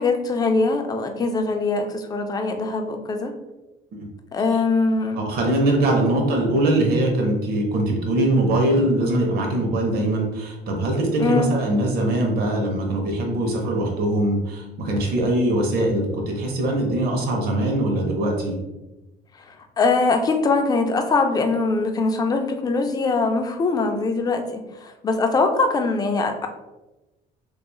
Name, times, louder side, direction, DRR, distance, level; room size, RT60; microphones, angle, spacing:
voice 1, 0.0-3.3 4.3-5.2 6.0-6.3 11.2-11.5 19.8-24.4 24.8-26.5, left 3 dB, 25° left, 5 dB, 0.3 m, -22 dB
voice 2, 5.1-18.6, right 1 dB, 65° right, 1 dB, 0.7 m, -22 dB
2.9 x 2.3 x 2.2 m, 1.0 s
cardioid pair, 110°, 17 cm